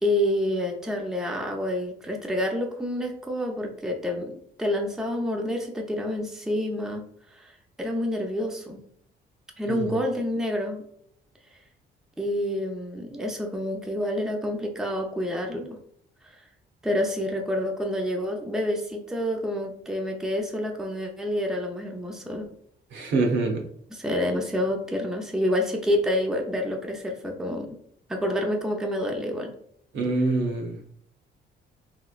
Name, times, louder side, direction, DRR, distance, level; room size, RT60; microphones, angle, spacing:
voice 1, 0.0-7.0 7.3-7.5 7.8-8.8 9.6-10.8 12.2-15.8 16.2-16.4 16.8-22.5 23.9-27.8 28.1-29.5, left 1 dB, ahead, 2 dB, 0.5 m, -28 dB
voice 2, 9.7-10.0 22.9-23.7 29.9-30.8, right 3 dB, 75° right, 2 dB, 0.8 m, -25 dB
3.0 x 2.9 x 2.4 m, 0.67 s
cardioid pair, 90°, 20 cm